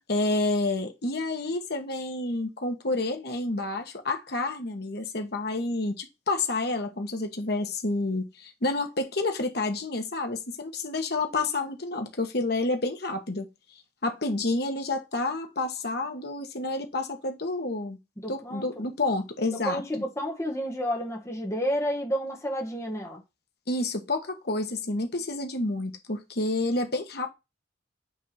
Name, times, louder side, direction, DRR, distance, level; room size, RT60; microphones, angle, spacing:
voice 1, 0.0-13.5 14.0-18.0 18.3-19.8 23.7-27.3, left 2 dB, 60° left, 1.4 m, -29 dB
voice 2, 18.2-18.8 19.6-23.2, equal, 15° left, 1.4 m, -30 dB
8.2 x 3.6 x 4.3 m
head